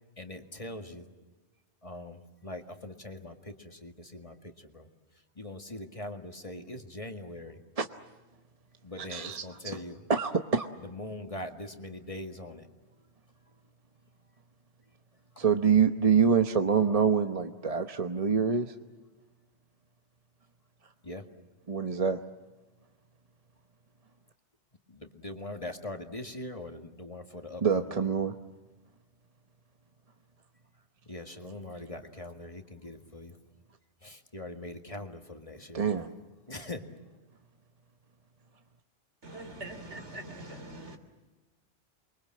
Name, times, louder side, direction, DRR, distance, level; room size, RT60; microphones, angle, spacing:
voice 1, 0.2-1.1 1.8-4.9 5.4-7.6 8.8-10.0 10.8-12.7 15.4-15.5 21.0-21.3 24.9-28.0 31.1-33.4 34.0-36.0 36.5-36.9, left 1 dB, 30° left, 5 dB, 2.0 m, -42 dB
voice 2, 9.1-9.8 10.1-10.7 15.4-18.7 21.7-22.2 27.6-28.3 35.7-36.1, right 6 dB, 35° right, 6 dB, 1.0 m, -26 dB
voice 3, 39.2-41.0, right 1 dB, 80° right, 7 dB, 3.5 m, -43 dB
29.5 x 23.0 x 7.6 m, 1.2 s
omnidirectional pair, 1.2 m